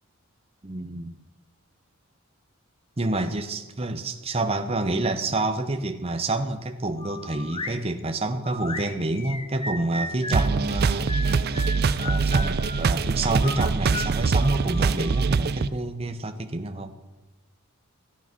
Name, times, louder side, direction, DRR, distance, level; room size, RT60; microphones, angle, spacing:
voice 1, 0.6-1.1 3.0-11.6 12.0-16.9, right 2 dB, 25° right, 6 dB, 0.8 m, -28 dB
sound 1, 7.0-7.8 8.4-10.5 11.1-12.9 13.4-15.3, left 2 dB, 25° left, 1.0 m, -35 dB
sound 2, 10.3-15.7, right 4 dB, 45° right, 0.4 m, -23 dB
15.0 x 9.7 x 6.0 m, 1.1 s
head